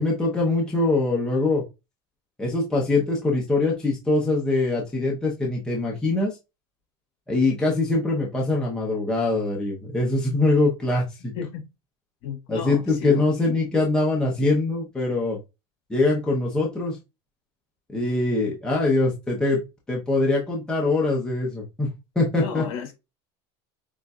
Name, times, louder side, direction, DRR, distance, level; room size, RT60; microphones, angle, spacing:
voice 1, 0.0-1.6 2.4-6.4 7.3-11.3 12.5-15.4 15.9-17.0 17.9-19.6 19.9-22.6, left 2 dB, 5° left, 0.8 m, -23 dB
voice 2, 12.2-13.6 22.4-23.0, left 6 dB, 50° left, 1.7 m, -34 dB
6.6 x 2.6 x 2.3 m
cardioid pair, 170°, 13 cm